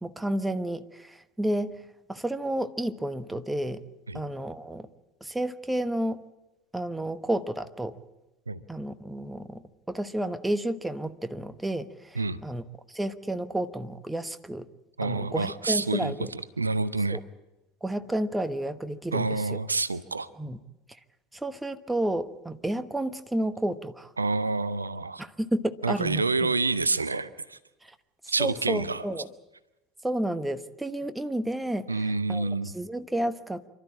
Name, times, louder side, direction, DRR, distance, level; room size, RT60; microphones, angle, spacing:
voice 1, 0.0-1.8 2.1-3.8 4.1-4.9 5.2-6.2 6.7-8.0 8.7-9.6 9.9-12.6 12.9-14.7 15.0-16.3 17.1-17.2 17.8-19.6 20.4-20.6 21.3-24.1 25.2-26.5 28.2-29.3 30.0-33.7, right 1 dB, 10° right, 12 dB, 1.1 m, -31 dB
voice 2, 15.0-17.2 19.1-20.3 24.2-25.2 25.8-27.6 28.3-29.0 31.9-32.7, right 3 dB, 85° right, 16 dB, 0.6 m, -28 dB
27.5 x 12.5 x 8.8 m, 1.0 s
figure-of-eight pair, 70°, 0 cm